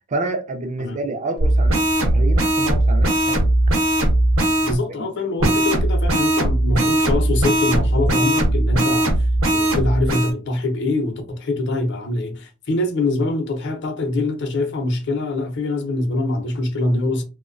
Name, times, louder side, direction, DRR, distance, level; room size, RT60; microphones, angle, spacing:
voice 1, 0.1-3.5 5.0-5.1, right 2 dB, 35° right, 0.4 m, -28 dB
sound 1, 1.4-4.8 5.4-10.3, right 1 dB, 70° right, 0.8 m, -18 dB
voice 2, 4.6-17.2, left 2 dB, 55° left, 0.6 m, -24 dB
2.5 x 2.1 x 2.5 m
head